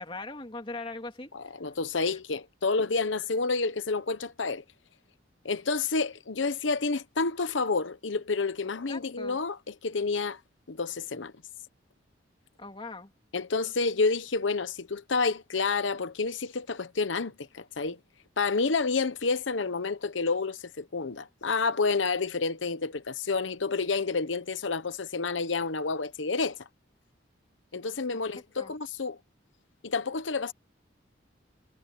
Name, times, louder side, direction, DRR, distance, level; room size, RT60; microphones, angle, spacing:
voice 1, 0.0-1.3 8.9-9.4 12.6-13.1 28.6-28.7, left 3 dB, 30° left, 3.0 m, -40 dB
voice 2, 1.3-4.6 5.4-10.4 10.7-11.3 13.3-18.0 18.4-26.6 27.7-29.2 29.8-30.5, left 4 dB, 90° left, 1.0 m, -29 dB
head